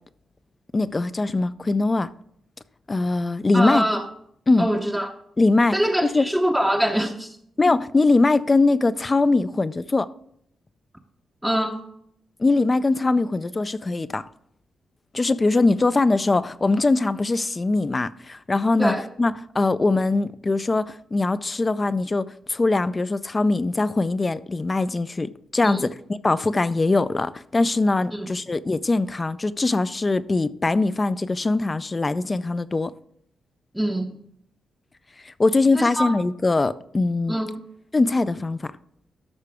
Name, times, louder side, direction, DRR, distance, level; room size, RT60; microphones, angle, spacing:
voice 1, 0.7-2.1 2.9-3.8 4.5-4.7 5.4-5.7 6.0-6.3 7.6-10.1 12.4-14.3 15.1-25.9 26.2-32.9 35.2-37.4 37.9-38.7, left 3 dB, 30° left, 0.5 m, -22 dB
voice 2, 3.5-4.0 4.6-5.1 5.7-7.4 11.4-11.8 18.8-19.0 25.6-25.8 28.1-28.3 33.7-34.1 35.7-36.2 37.3-37.6, equal, 5° right, 0.8 m, -24 dB
13.0 x 5.7 x 3.5 m
cardioid pair, 75°, 0 cm